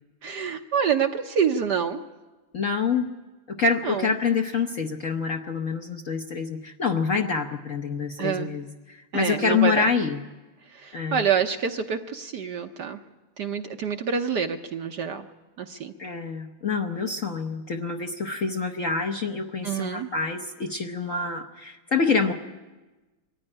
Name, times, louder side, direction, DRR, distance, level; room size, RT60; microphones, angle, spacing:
voice 1, 0.2-2.0 3.8-4.1 8.2-8.5 9.1-9.9 10.7-13.0 13.4-15.3 15.6-15.9 19.6-20.1, right 7 dB, 60° right, 6 dB, 1.2 m, -27 dB
voice 2, 2.5-3.1 3.5-10.2 10.9-11.2 16.0-22.3, left 5 dB, 50° left, 3 dB, 1.0 m, -26 dB
24.0 x 14.5 x 10.0 m, 1.2 s
omnidirectional pair, 2.4 m